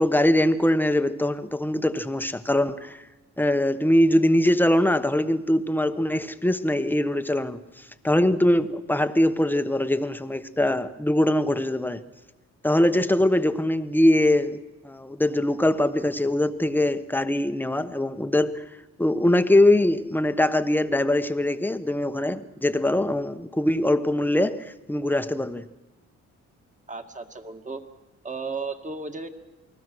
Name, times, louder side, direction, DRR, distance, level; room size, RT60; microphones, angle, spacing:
voice 1, 0.0-3.0 3.4-7.6 8.0-12.0 12.6-18.6 19.0-25.6, left 1 dB, 5° left, 1.1 m, -22 dB
voice 2, 26.9-27.8 28.2-29.3, right 4 dB, 25° right, 2.1 m, -34 dB
28.5 x 20.0 x 6.3 m
cardioid pair, 90°, 30 cm